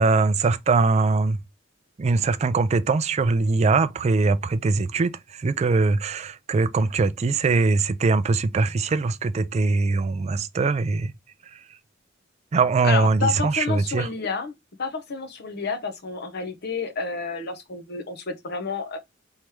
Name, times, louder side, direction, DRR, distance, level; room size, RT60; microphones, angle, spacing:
voice 1, 0.0-1.4 2.0-11.1 12.5-14.1, right 3 dB, 35° right, 0.3 m, -22 dB
voice 2, 12.8-14.5 14.8-19.0, left 4 dB, 55° left, 0.8 m, -30 dB
3.2 x 3.0 x 4.7 m
head